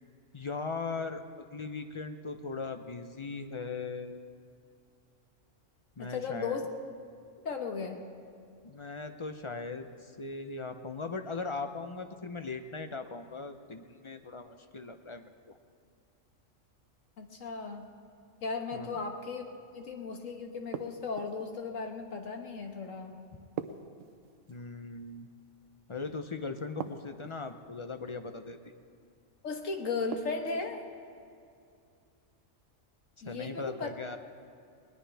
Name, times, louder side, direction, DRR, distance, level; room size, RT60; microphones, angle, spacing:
voice 1, 0.3-4.2 6.0-6.7 8.6-15.6 18.7-19.0 24.5-25.3 25.9-28.7 33.2-34.2, left 4 dB, 40° left, 7 dB, 0.4 m, -39 dB
voice 2, 6.0-6.7 7.5-8.0 17.2-17.9 18.4-19.4 19.7-23.2 29.4-30.8 33.2-33.9, left 4 dB, 75° left, 4 dB, 1.7 m, -36 dB
sound 1, 20.7-21.5 23.6-24.6 26.8-27.6 30.1-30.8, right 8 dB, 75° right, 1.1 m, -41 dB
20.0 x 19.5 x 3.4 m, 2.4 s
omnidirectional pair, 1.3 m